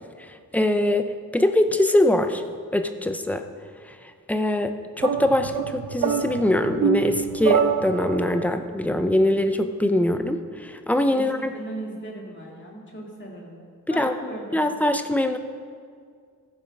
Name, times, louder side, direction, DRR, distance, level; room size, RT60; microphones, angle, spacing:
voice 1, 0.5-2.4 2.7-3.4 4.3-11.5 13.9-14.1 14.5-15.4, left 1 dB, 5° left, 8 dB, 0.5 m, -22 dB
sound 1, 5.0-8.5, right 8 dB, 80° right, 0.9 m, -25 dB
voice 2, 11.1-13.6 13.9-14.8, right 1 dB, 35° left, -1 dB, 2.1 m, -37 dB
14.5 x 7.1 x 5.2 m, 2.1 s
wide cardioid pair, 150°, 33 cm